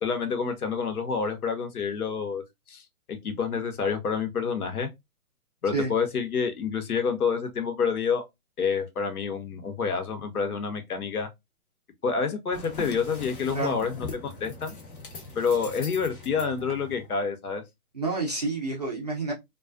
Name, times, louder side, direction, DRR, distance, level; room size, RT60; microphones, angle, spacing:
voice 1, 0.0-2.4 2.7-2.8 3.1-4.9 5.6-8.2 8.6-11.3 12.0-14.7 15.4-17.6, left 5 dB, 70° left, 0.9 m, -28 dB
sound 1, 12.5-17.2, left 3 dB, 35° left, 0.6 m, -41 dB
voice 2, 17.9-19.3, right 3 dB, 30° right, 0.4 m, -29 dB
2.3 x 2.3 x 2.3 m
hypercardioid pair, 150°, 46 cm